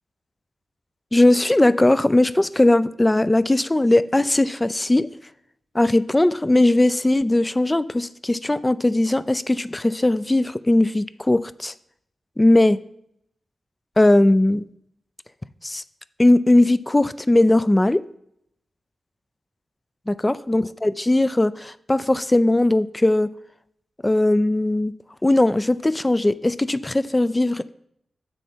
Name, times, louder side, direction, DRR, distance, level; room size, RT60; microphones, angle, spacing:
voice 1, 1.1-5.1 5.7-11.7 12.4-12.8 14.0-14.6 15.6-15.8 16.2-18.0 20.1-23.3 24.0-24.9 25.2-27.7, left 1 dB, 20° left, 15 dB, 0.3 m, -19 dB
7.3 x 6.4 x 4.4 m, 0.73 s
cardioid pair, 65°, 0 cm